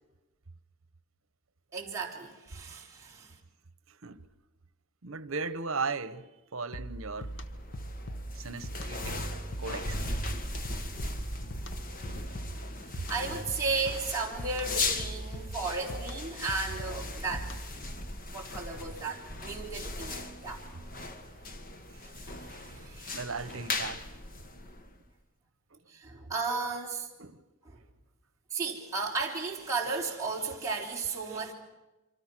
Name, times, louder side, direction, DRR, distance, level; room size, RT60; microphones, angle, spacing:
voice 1, 1.7-3.4 13.1-17.5 18.3-20.6 22.2-23.2 25.9-27.1 27.6-27.8 28.5-31.5, right 4 dB, 15° right, 3.9 m, -34 dB
voice 2, 3.9-4.3 5.0-7.3 8.3-9.2 9.6-10.0 23.1-24.0 25.7-25.8 27.2-27.4 31.3-31.4, right 4 dB, 75° right, 1.1 m, -37 dB
sound 1, 6.7-17.9, right 1 dB, 55° left, 1.4 m, -41 dB
sound 2, 7.2-25.1, left 2 dB, 40° left, 1.6 m, -38 dB
26.5 x 25.5 x 6.2 m
head